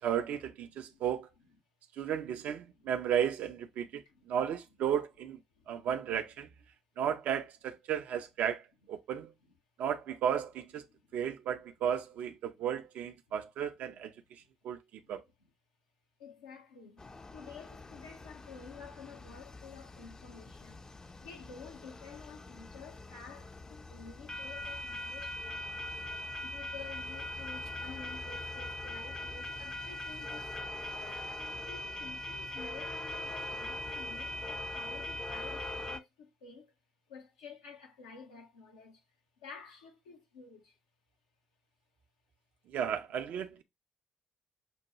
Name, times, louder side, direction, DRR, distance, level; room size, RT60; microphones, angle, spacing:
voice 1, 0.0-1.3 2.0-5.4 5.7-6.5 7.0-9.3 9.8-10.9 11.1-15.2 42.7-43.6, right 9 dB, 60° right, 0.5 m, -34 dB
voice 2, 0.7-1.0 4.1-4.2 5.6-5.7 10.9-11.0 15.0-15.1 16.2-17.0 17.3-20.9 21.2-25.9 26.4-31.3 31.7-36.7 37.1-39.0 39.4-40.8, left 5 dB, 75° left, 0.8 m, -51 dB
sound 1, 17.0-36.0, left 1 dB, 25° left, 0.5 m, -41 dB
6.1 x 2.2 x 2.9 m
figure-of-eight pair, 40°, 3 cm